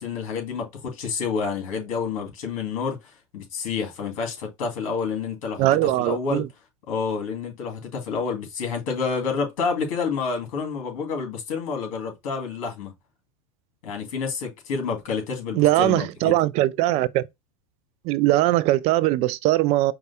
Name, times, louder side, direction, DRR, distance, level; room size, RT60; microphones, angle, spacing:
voice 1, 0.0-6.4 6.9-12.9 13.8-16.3, left 5 dB, 65° left, 2.5 m, -29 dB
voice 2, 5.6-6.5 15.6-17.2 18.1-19.9, right 16 dB, 35° right, 0.4 m, -20 dB
4.8 x 2.2 x 4.1 m
supercardioid pair, 135°, 18 cm